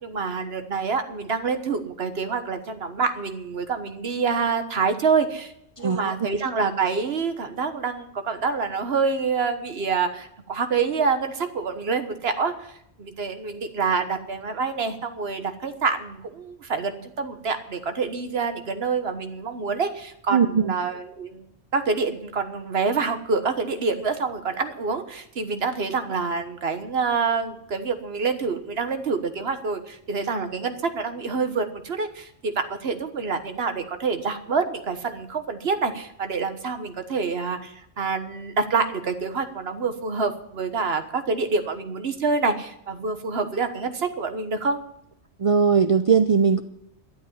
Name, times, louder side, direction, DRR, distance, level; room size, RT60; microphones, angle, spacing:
voice 1, 0.0-5.5 5.8-12.7 13.0-21.4 21.7-44.8, right 4 dB, 65° right, 8 dB, 1.5 m, -27 dB
voice 2, 5.8-6.1 20.3-20.7 45.4-46.6, right 6 dB, 40° right, 10 dB, 0.5 m, -19 dB
12.5 x 8.3 x 9.8 m, 0.76 s
omnidirectional pair, 1.2 m